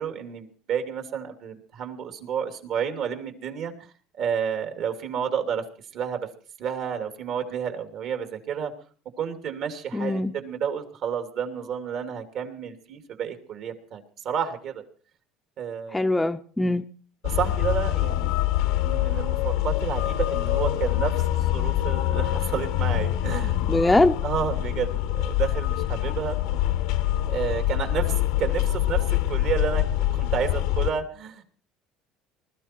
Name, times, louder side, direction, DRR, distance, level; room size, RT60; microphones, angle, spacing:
voice 1, 0.0-3.7 4.2-5.7 5.9-6.3 6.6-8.7 9.2-14.8 15.6-16.0 17.2-18.3 18.8-23.6 23.9-26.4 27.3-31.4, right 7 dB, 60° right, 2.9 m, -30 dB
voice 2, 9.9-10.3 15.9-16.8 23.7-24.2, left 2 dB, 10° left, 0.7 m, -22 dB
sound 1, 17.2-30.9, left 13 dB, 80° left, 1.2 m, -25 dB
21.0 x 13.5 x 4.5 m
supercardioid pair, 110°, 0 cm